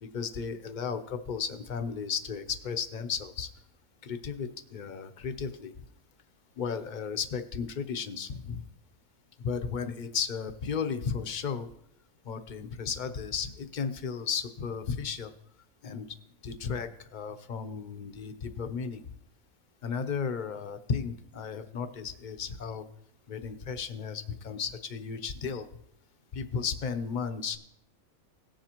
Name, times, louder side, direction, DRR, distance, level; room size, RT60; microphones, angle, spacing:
voice 1, 0.0-3.5 4.0-5.7 6.6-8.6 9.4-11.7 12.2-15.3 15.8-16.1 16.4-19.1 19.8-22.9 23.3-25.7 26.3-27.6, left 6 dB, 50° left, 9 dB, 0.5 m, -34 dB
18.0 x 7.5 x 2.9 m, 0.81 s
omnidirectional pair, 1.5 m